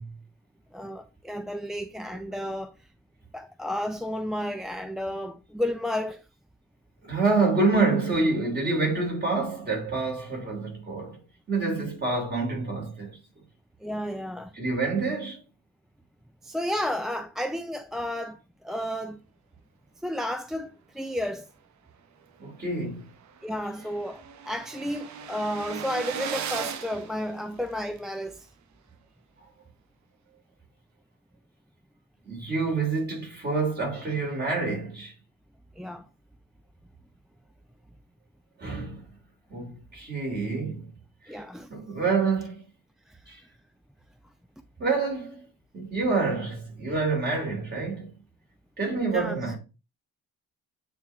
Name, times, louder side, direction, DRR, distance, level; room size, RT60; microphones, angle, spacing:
voice 1, 0.7-2.7 3.3-6.2 13.8-14.6 16.4-19.2 20.0-21.5 23.4-28.5 35.8-36.1 41.3-41.7 43.1-43.2 49.1-49.4, equal, ahead, 0.4 m, -32 dB
voice 2, 7.0-11.2 11.5-13.1 14.5-15.4 22.4-23.1 32.2-35.1 38.6-39.0 39.5-40.9 41.3-41.4 41.7-42.6 43.3-43.4 44.8-45.4 45.7-48.1 48.8-49.6, right 3 dB, 35° right, 3.2 m, -27 dB
sound 1, 22.4-22.5 22.8-22.9 23.1-28.0, right 8 dB, 70° right, 0.8 m, -38 dB
8.9 x 3.1 x 3.4 m
cardioid pair, 90°, 30 cm